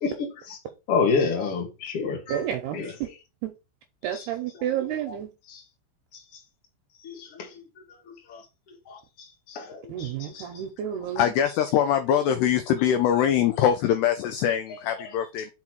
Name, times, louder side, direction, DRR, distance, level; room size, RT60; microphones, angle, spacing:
voice 1, 0.0-0.6 0.9-2.4 2.7-2.9 4.1-4.3 5.1-5.2 5.5-5.6 7.0-7.6 8.1-8.4 8.9-9.0 9.5-10.4, left 5 dB, 65° left, 1.4 m, -29 dB
voice 2, 2.3-2.8 3.4-3.5 4.0-5.3 9.9-11.3, right 10 dB, 80° right, 2.4 m, -30 dB
voice 3, 11.0-15.5, left 9 dB, 90° left, 2.3 m, -23 dB
6.0 x 5.5 x 4.7 m
omnidirectional pair, 5.8 m